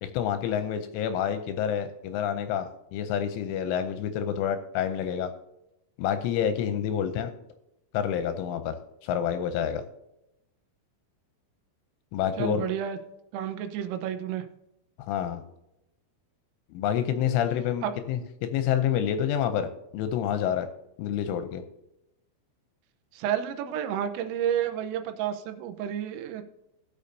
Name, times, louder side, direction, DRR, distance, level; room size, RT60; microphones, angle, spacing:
voice 1, 0.0-5.3 6.0-7.3 7.9-8.8 9.0-9.8 12.1-12.6 15.0-15.4 16.7-20.7 21.0-21.6, left 9 dB, 80° left, 9 dB, 2.9 m, -28 dB
voice 2, 12.4-13.0 13.3-14.4 17.8-17.9 23.1-26.4, right 9 dB, 85° right, 7 dB, 3.4 m, -30 dB
18.5 x 6.8 x 2.7 m, 0.87 s
omnidirectional pair, 6.0 m